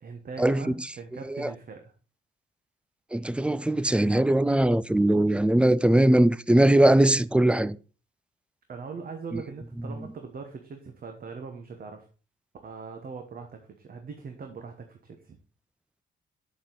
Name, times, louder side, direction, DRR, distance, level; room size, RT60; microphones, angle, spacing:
voice 1, 0.0-1.9 8.7-12.1 12.6-15.4, right 5 dB, 50° right, 1.2 m, -41 dB
voice 2, 3.1-7.8, right 1 dB, 5° right, 0.3 m, -21 dB
7.2 x 7.0 x 3.9 m
cardioid pair, 90°, 20 cm